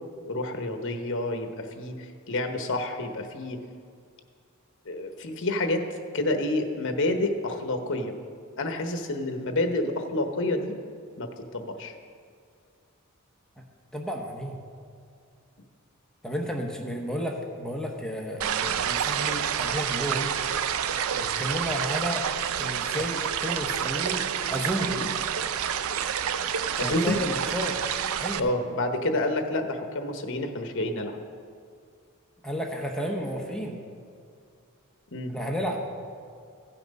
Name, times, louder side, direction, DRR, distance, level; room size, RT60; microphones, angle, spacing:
voice 1, 0.3-3.6 4.9-5.8 6.1-8.1 8.6-10.8 11.2-11.9 18.8-19.0 24.9-25.1 26.8-27.2 28.4-31.2 35.1-35.3, left 2 dB, 60° left, 6 dB, 1.0 m, -29 dB
voice 2, 13.9-14.6 16.2-20.3 21.1-22.3 22.6-24.9 26.8-27.7 28.2-28.5 32.4-33.8 35.3-35.8, equal, 5° left, 0 dB, 0.9 m, -32 dB
sound 1, 18.4-28.4, right 8 dB, 70° right, 0.4 m, -28 dB
15.5 x 5.9 x 5.3 m, 2.3 s
head